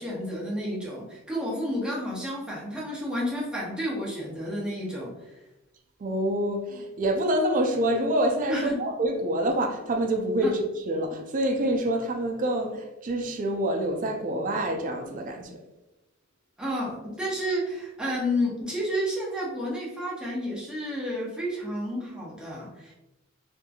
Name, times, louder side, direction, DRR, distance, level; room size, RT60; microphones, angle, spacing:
voice 1, 0.0-5.4 8.5-8.8 10.4-10.5 16.6-22.9, equal, 5° right, 0.7 m, -31 dB
voice 2, 6.0-15.6, right 1 dB, 40° right, 0.4 m, -27 dB
2.9 x 2.5 x 2.3 m
head